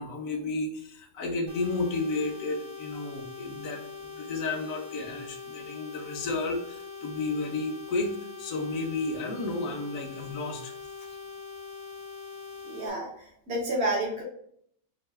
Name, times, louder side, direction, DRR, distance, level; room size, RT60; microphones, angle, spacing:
voice 1, 0.0-10.7, left 3 dB, 80° left, 3 dB, 1.1 m, -32 dB
sound 1, 1.5-12.9, left 4 dB, 70° right, 2.2 m, -42 dB
voice 2, 12.7-13.1 13.5-14.2, right 1 dB, 55° right, -2 dB, 1.5 m, -29 dB
4.1 x 2.5 x 3.5 m, 0.66 s
omnidirectional pair, 1.4 m